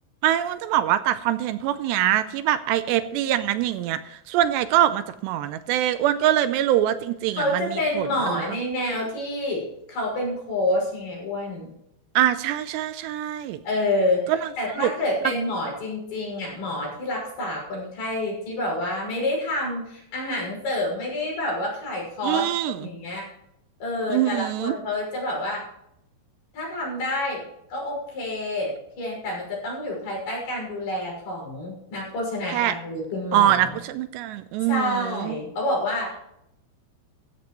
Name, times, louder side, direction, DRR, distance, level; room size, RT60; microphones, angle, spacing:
voice 1, 0.2-4.0 4.3-8.4 12.2-13.6 14.3-14.5 14.8-14.9 22.2-22.8 24.1-24.7 32.5-32.7 33.3-35.4, right 12 dB, 80° right, 11 dB, 2.8 m, -23 dB
voice 2, 7.4-11.7 13.6-22.4 22.8-23.3 23.8-25.6 26.5-27.4 27.7-33.8 34.6-36.2, left 1 dB, 60° left, -2 dB, 7.9 m, -28 dB
15.5 x 14.0 x 3.1 m, 0.79 s
omnidirectional pair, 5.1 m